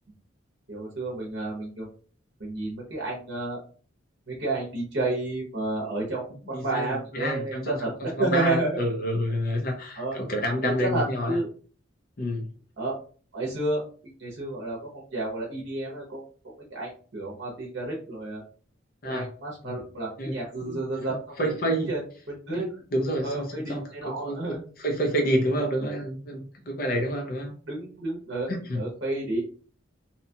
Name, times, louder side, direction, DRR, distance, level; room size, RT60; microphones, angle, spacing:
voice 1, 0.7-1.9 2.4-3.6 4.3-7.9 8.2-8.8 10.0-10.1 10.6-11.5 12.8-13.0 13.3-13.8 14.2-16.2 16.7-18.4 19.0-21.5 21.9-22.0 22.3-22.7 23.2-24.6 27.7-29.4, right 2 dB, 60° right, -4 dB, 0.7 m, -30 dB
voice 2, 6.5-7.9 8.2-11.4 12.2-12.5 19.0-19.3 19.6-19.7 20.2-20.8 21.4-21.9 22.5-27.5 28.5-28.8, equal, 45° left, 2 dB, 0.5 m, -29 dB
2.7 x 2.3 x 2.7 m, 0.42 s
head